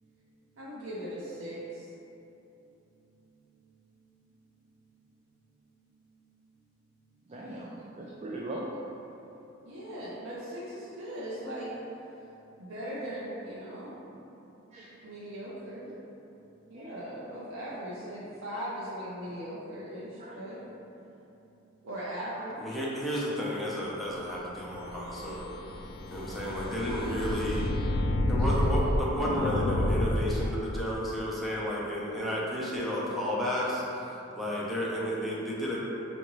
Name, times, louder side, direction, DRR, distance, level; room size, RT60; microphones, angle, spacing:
voice 1, 0.6-1.9 9.6-11.7 12.6-14.0 15.0-15.9 16.7-20.6 21.8-22.6 28.4-28.8, equal, 85° right, -8 dB, 0.6 m, -39 dB
voice 2, 7.3-8.7 14.7-15.0 16.8-16.9 20.2-20.3 22.4-22.5, right 1 dB, 35° right, -4 dB, 0.3 m, -40 dB
voice 3, 22.6-25.5 26.1-27.7 28.3-35.8, equal, ahead, -7 dB, 0.6 m, -32 dB
sound 1, 24.6-30.9, left 1 dB, 50° left, 0.3 m, -30 dB
5.0 x 2.6 x 3.0 m, 2.9 s
head